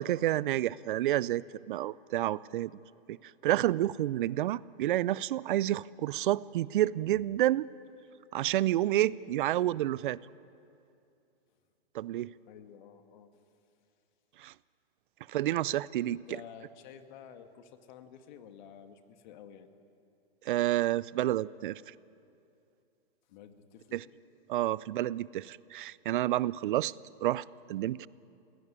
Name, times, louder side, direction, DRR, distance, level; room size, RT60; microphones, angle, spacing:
voice 1, 0.0-2.7 3.1-3.2 3.4-7.7 8.3-10.2 11.9-12.3 14.4-14.5 15.3-16.2 20.5-21.8 23.9-24.0 24.5-26.9 27.2-28.1, right 14 dB, 55° right, 22 dB, 0.5 m, -29 dB
voice 2, 12.4-13.3 16.1-19.7 23.3-24.0, left 8 dB, 50° left, 7 dB, 2.0 m, -51 dB
21.0 x 17.0 x 9.7 m, 2.6 s
hypercardioid pair, 130°, 30 cm